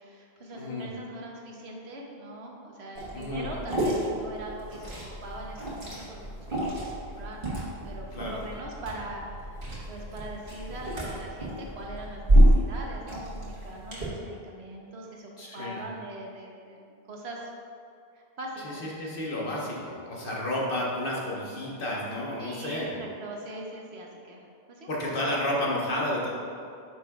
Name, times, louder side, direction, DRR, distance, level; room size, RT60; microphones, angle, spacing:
voice 1, 0.0-4.9 5.2-9.6 9.9-17.5 18.4-19.5 22.4-24.4 24.7-24.9, right 1 dB, 80° right, -1 dB, 1.2 m, -41 dB
voice 2, 0.5-0.9 3.1-3.5 8.1-8.4 15.4-15.9 18.6-23.0 24.9-26.3, left 1 dB, 55° left, -4 dB, 1.3 m, -31 dB
Liquid, 2.9-14.0, right 1 dB, 55° right, 1.7 m, -28 dB
9.3 x 6.0 x 2.4 m, 2.5 s
omnidirectional pair, 1.1 m